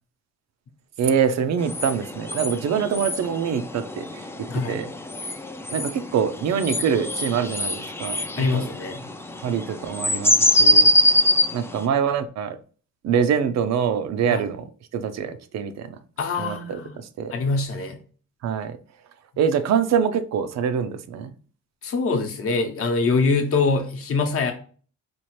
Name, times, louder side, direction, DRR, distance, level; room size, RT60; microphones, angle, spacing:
voice 1, 1.0-4.1 4.7-4.9 5.7-8.7 9.4-10.9 11.5-12.6 13.0-14.7 14.9-15.9 16.4-17.3 18.4-18.8 19.4-21.4, right 7 dB, 60° right, 0.5 m, -24 dB
sound 1, 1.6-11.8, left 1 dB, 10° left, 0.3 m, -23 dB
voice 2, 4.5-4.8 8.4-9.1 14.3-14.4 16.2-16.9 17.3-18.0 21.8-24.5, left 4 dB, 50° left, 0.8 m, -24 dB
4.4 x 2.4 x 3.1 m
cardioid pair, 90°, 30 cm